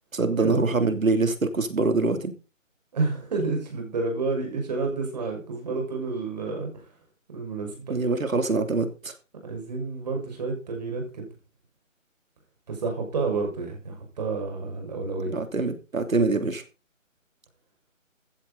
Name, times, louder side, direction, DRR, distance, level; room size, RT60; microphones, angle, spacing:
voice 1, 0.1-2.3 7.9-9.1 15.3-16.6, right 3 dB, 80° right, 8 dB, 3.1 m, -24 dB
voice 2, 2.9-6.8 7.3-7.9 9.4-11.3 12.7-15.3, right 3 dB, 30° right, 2 dB, 6.2 m, -30 dB
15.0 x 11.5 x 4.1 m, 0.33 s
figure-of-eight pair, 170°, 40 cm